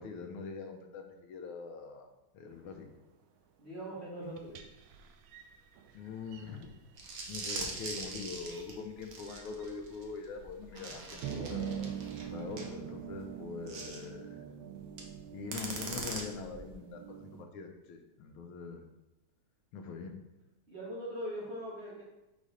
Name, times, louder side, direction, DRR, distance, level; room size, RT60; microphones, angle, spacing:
voice 1, 0.0-2.1 2.3-2.9 5.9-6.7 7.3-11.9 12.3-14.4 15.3-18.8 19.7-20.1, left 5 dB, 80° left, 4 dB, 1.5 m, -43 dB
voice 2, 3.6-4.6 20.7-22.0, equal, 35° right, -7 dB, 1.6 m, -41 dB
sound 1, 4.2-6.8 7.8-7.9 8.5-8.6 9.3-9.7 10.6-10.7 11.0-17.4, right 9 dB, 75° right, 1.4 m, -44 dB
sound 2, 7.0-12.7 13.7-14.0 14.9-15.1 15.5-16.8, right 3 dB, 55° right, 1.1 m, -42 dB
4.7 x 4.1 x 5.0 m, 0.99 s
omnidirectional pair, 2.3 m